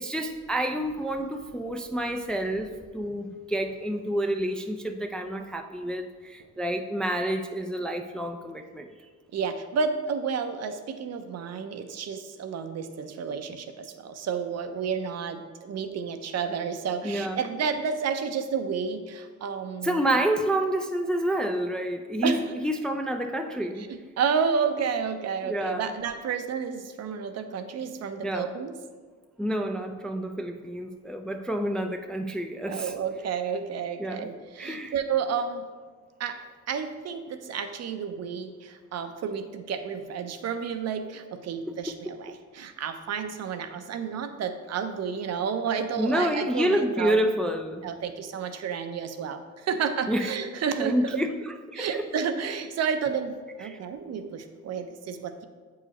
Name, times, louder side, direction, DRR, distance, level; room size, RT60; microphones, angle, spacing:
voice 1, 0.0-8.9 17.0-17.5 19.8-23.9 25.4-25.9 28.2-28.6 29.4-33.0 34.0-34.3 34.6-35.0 41.7-42.0 46.0-47.9 50.1-50.4 50.7-52.1 53.6-53.8, right 1 dB, 5° left, 5 dB, 0.3 m, -29 dB
voice 2, 9.3-20.0 22.2-22.4 23.8-28.8 32.7-35.7 36.2-47.2 47.8-51.2 51.7-55.4, right 6 dB, 60° right, 8 dB, 0.6 m, -31 dB
7.8 x 4.8 x 2.9 m, 1.5 s
cardioid pair, 90°, 30 cm